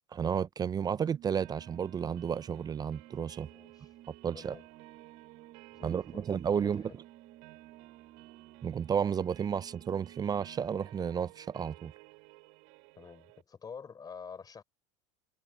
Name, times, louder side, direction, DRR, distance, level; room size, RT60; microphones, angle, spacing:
voice 1, 0.1-3.5 4.2-4.6 5.8-6.8 8.6-11.9, right 7 dB, 25° right, 0.6 m, -32 dB
Organ, 0.7-10.9, right 14 dB, 50° right, 7.6 m, -56 dB
sound 1, 1.4-13.4, right 38 dB, 65° right, 7.6 m, -56 dB
voice 2, 3.4-4.0 4.3-4.7 5.7-7.0 13.0-14.6, left 6 dB, 25° left, 4.1 m, -49 dB
hypercardioid pair, 90°, 16 cm